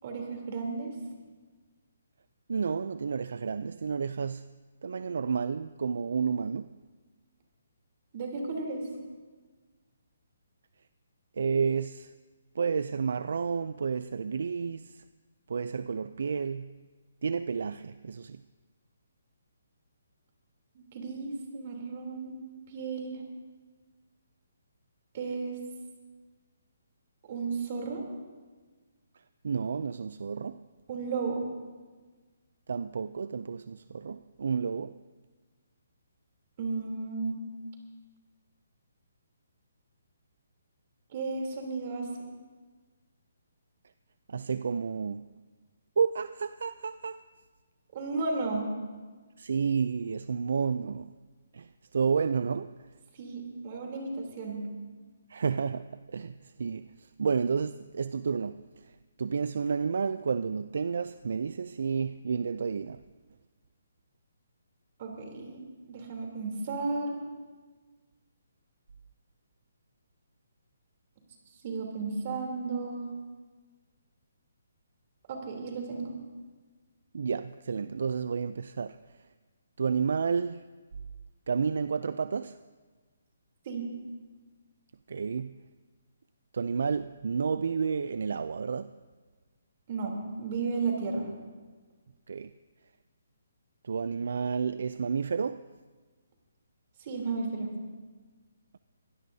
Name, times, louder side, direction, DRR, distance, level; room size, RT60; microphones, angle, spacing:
voice 1, 0.0-0.9 8.1-8.8 20.7-22.3 22.7-23.2 25.1-25.6 27.3-28.0 30.9-31.4 36.6-37.4 41.1-42.3 47.9-48.7 53.1-54.6 65.0-65.6 65.9-67.2 71.6-73.1 75.3-76.1 83.6-83.9 89.9-90.1 90.4-91.3 97.0-97.7, right 4 dB, 40° right, 3.3 m, -33 dB
voice 2, 2.5-4.5 4.8-6.7 11.3-12.1 12.5-15.0 15.5-16.8 17.2-18.4 29.4-30.7 32.7-35.0 44.3-45.3 46.0-47.2 49.4-51.1 51.5-52.9 55.3-63.0 77.1-79.3 79.8-80.7 81.5-82.6 85.1-85.6 86.5-89.0 92.3-92.5 93.8-95.7, right 5 dB, 65° right, 0.4 m, -31 dB
23.5 x 16.5 x 2.7 m
hypercardioid pair, 165°, 0 cm